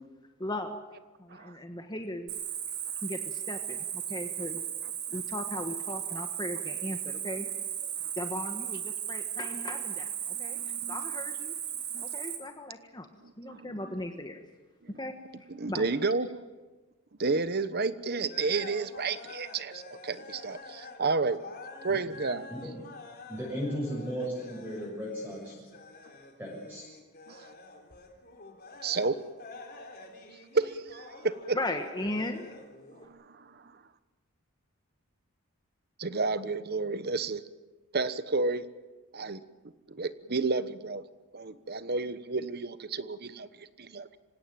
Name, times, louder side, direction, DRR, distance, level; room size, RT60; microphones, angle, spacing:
voice 1, 0.4-0.8 1.2-2.3 3.0-4.6 5.1-7.5 8.2-11.5 12.0-13.1 13.4-14.4 15.0-16.2 31.4-32.5 32.9-33.1, left 1 dB, 20° left, 5 dB, 1.3 m, -37 dB
Cricket, 2.3-12.4, right 9 dB, 70° right, 3.9 m, -36 dB
voice 2, 10.3-11.0 11.9-12.0 13.2-13.8 14.9-15.0 15.5-16.3 17.2-21.4 21.8-22.5 27.3-27.5 28.8-29.2 30.5-31.6 32.9-33.8 36.0-37.4 37.9-38.7 39.1-39.4 39.9-41.1 41.3-44.2, right 3 dB, 45° right, 13 dB, 1.1 m, -31 dB
sound 1, 18.3-21.0 21.3-33.1, left 3 dB, 45° left, 3.7 m, -48 dB
voice 3, 23.3-25.5 26.4-26.9, equal, 10° right, -5 dB, 7.1 m, -35 dB
26.0 x 17.0 x 9.0 m, 1.2 s
head